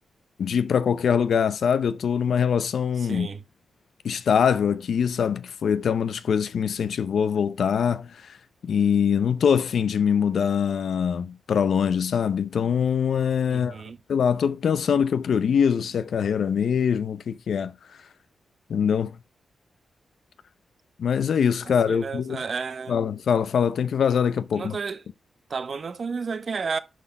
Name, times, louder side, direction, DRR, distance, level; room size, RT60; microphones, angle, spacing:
voice 1, 0.4-3.3 4.0-8.1 8.6-13.8 14.1-17.7 18.7-19.2 21.0-22.4 22.9-24.8, left 7 dB, 65° left, 0.7 m, -23 dB
voice 2, 3.0-3.4 13.5-14.0 21.9-23.0 24.5-25.0 25.5-26.8, right 5 dB, 45° right, 0.9 m, -31 dB
11.5 x 4.2 x 5.3 m
wide cardioid pair, 155°, 0 cm